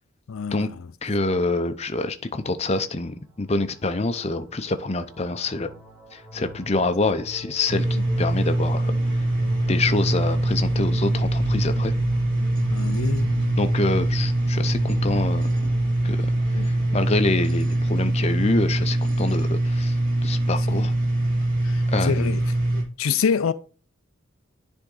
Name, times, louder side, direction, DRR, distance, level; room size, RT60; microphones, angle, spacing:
voice 1, 0.3-0.7 12.7-13.3 16.5-16.7 20.7-20.9 21.6-22.4 22.7-23.5, left 6 dB, 75° left, 0.4 m, -26 dB
voice 2, 1.0-5.7 6.1-7.9 8.2-9.2 9.7-11.9 13.6-15.5 16.0-20.0 20.2-20.9 21.9-22.4, left 2 dB, 30° left, 0.6 m, -26 dB
sound 1, 4.4-17.2, equal, 10° right, 1.9 m, -37 dB
sound 2, 7.7-22.8, right 1 dB, 40° right, 2.9 m, -23 dB
10.0 x 3.6 x 3.8 m
head